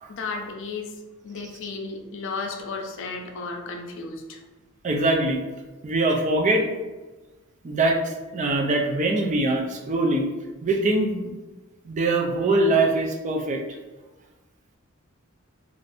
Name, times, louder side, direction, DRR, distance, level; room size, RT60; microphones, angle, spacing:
voice 1, 0.1-1.0 1.2-4.4, left 4 dB, 60° left, 3 dB, 0.5 m, -34 dB
voice 2, 4.8-5.4 5.8-6.7 7.6-10.3 10.6-11.4 11.8-13.6, right 2 dB, 35° right, 1 dB, 0.4 m, -23 dB
2.5 x 2.4 x 3.3 m, 1.2 s
head